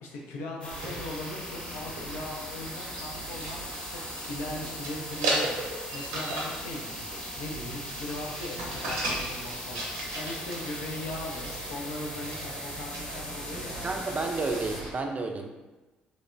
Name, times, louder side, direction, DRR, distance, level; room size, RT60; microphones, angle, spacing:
voice 1, 0.0-3.6 3.9-4.0 4.3-7.1 7.4-13.9, left 2 dB, 75° left, -1 dB, 0.5 m, -39 dB
sound 1, 0.6-14.8, left 1 dB, 20° left, 0.8 m, -41 dB
sound 2, 0.7-14.9, right 1 dB, 80° right, 0.6 m, -36 dB
voice 2, 13.8-15.5, right 3 dB, 35° right, 4 dB, 0.4 m, -31 dB
3.1 x 2.1 x 2.4 m, 1.1 s
hypercardioid pair, 55°, 4 cm